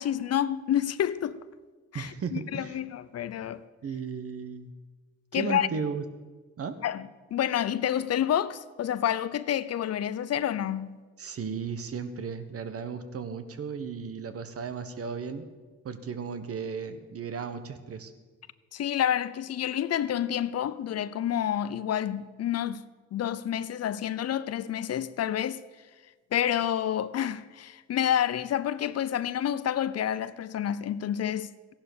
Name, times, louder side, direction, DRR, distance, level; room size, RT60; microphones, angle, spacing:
voice 1, 0.0-1.4 1.9-3.6 5.3-5.7 6.8-11.0 18.7-22.8 23.1-25.6 26.3-31.7, left 10 dB, 55° left, 0.6 m, -29 dB
voice 2, 1.9-2.8 3.8-4.7 5.3-6.0 6.6-6.8 11.2-15.5 15.8-18.1, right 5 dB, 50° right, 1.4 m, -35 dB
15.0 x 11.0 x 6.9 m
cardioid pair, 90°, 30 cm